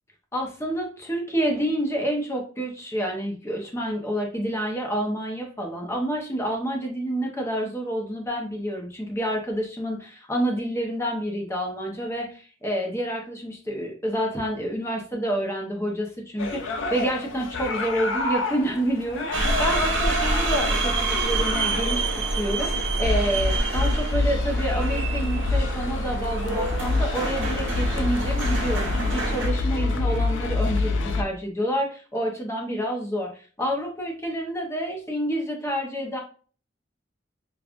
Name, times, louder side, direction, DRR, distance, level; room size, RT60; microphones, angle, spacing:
voice 1, 0.3-19.3 19.6-36.2, right 1 dB, 15° left, 1 dB, 0.7 m, -28 dB
sound 1, 16.4-31.2, left 3 dB, 85° left, 0.5 m, -28 dB
sound 2, 19.3-29.5, right 2 dB, 75° right, 1.1 m, -27 dB
5.0 x 2.4 x 2.4 m, 0.40 s
head